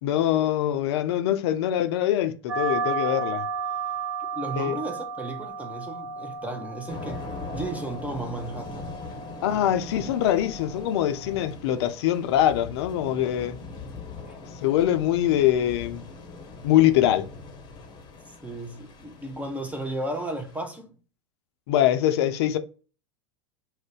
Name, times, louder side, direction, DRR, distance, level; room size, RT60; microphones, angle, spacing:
voice 1, 0.0-3.5 4.6-4.8 9.4-13.6 14.6-16.1 16.6-17.3 21.7-22.6, left 12 dB, 60° left, 0.4 m, -23 dB
sound 1, 2.5-11.5, right 5 dB, 85° right, 0.5 m, -34 dB
voice 2, 4.3-9.0 14.3-14.4 18.3-20.9, right 2 dB, 10° right, 0.5 m, -34 dB
Thunder / Rain, 6.9-20.6, left 3 dB, 30° left, 0.7 m, -41 dB
2.4 x 2.1 x 3.7 m
hypercardioid pair, 90°, 15 cm